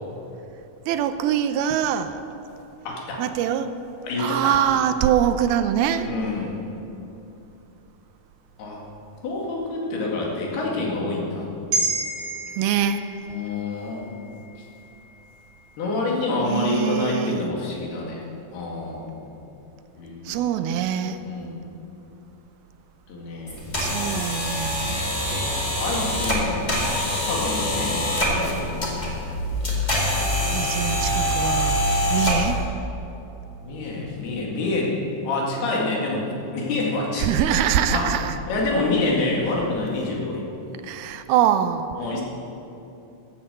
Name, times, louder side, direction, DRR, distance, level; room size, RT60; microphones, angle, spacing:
voice 1, 0.9-2.2 3.2-3.7 4.2-6.1 12.6-13.0 16.5-17.4 20.3-21.2 23.8-25.0 30.4-31.8 32.1-32.6 37.2-38.4 40.8-41.9, right 9 dB, 85° right, 10 dB, 2.5 m, -23 dB
voice 2, 2.9-3.2 4.0-4.6 6.0-6.6 8.6-8.8 9.2-11.5 13.3-14.2 15.8-18.2 18.5-19.3 20.0-20.4 21.2-21.6 23.1-23.6 25.8-26.7 27.1-29.0 33.6-35.0 35.2-37.3 37.9-38.2 38.5-40.5 42.0-42.2, left 2 dB, 90° left, -2 dB, 4.1 m, -27 dB
sound 1, 11.7-16.2 16.6-16.7, right 2 dB, 45° right, 3.1 m, -32 dB
sound 2, 23.5-32.6, left 1 dB, 15° left, 1.8 m, -24 dB
14.0 x 8.8 x 8.0 m, 2.8 s
omnidirectional pair, 4.4 m